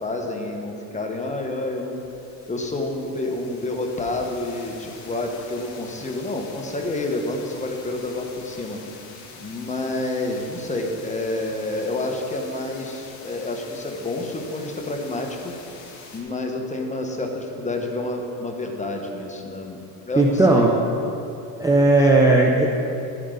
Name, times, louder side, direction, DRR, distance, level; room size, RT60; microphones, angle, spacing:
voice 1, 0.0-2.0 2.5-8.8 9.4-15.5 16.1-19.8 20.1-20.7 22.1-22.2, left 2 dB, 15° left, 2 dB, 1.2 m, -29 dB
sound 1, 1.2-16.2, left 4 dB, 80° left, 2.7 m, -45 dB
voice 2, 20.2-20.7 21.6-22.7, right 2 dB, 10° right, -2 dB, 0.8 m, -16 dB
12.5 x 9.5 x 3.9 m, 2.7 s
cardioid pair, 115°, 45 cm